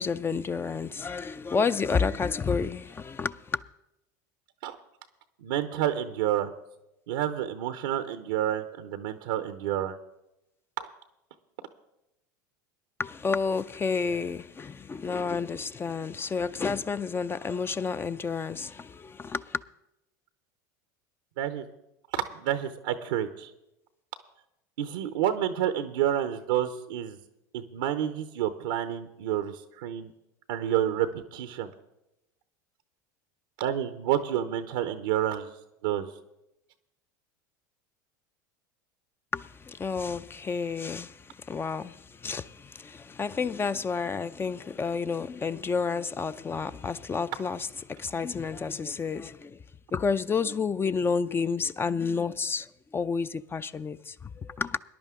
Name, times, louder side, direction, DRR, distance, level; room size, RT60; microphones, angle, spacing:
voice 1, 0.0-3.6 13.0-19.6 39.3-49.6 49.9-54.8, left 5 dB, 20° left, 0.5 m, -30 dB
voice 2, 5.4-6.5 7.1-10.0 10.8-10.9 21.4-21.6 22.1-23.5 24.8-27.2 27.5-30.1 30.5-31.7 33.6-35.5 35.8-36.1, right 11 dB, 75° right, 0.8 m, -29 dB
19.5 x 10.5 x 3.7 m
hypercardioid pair, 85°, 10 cm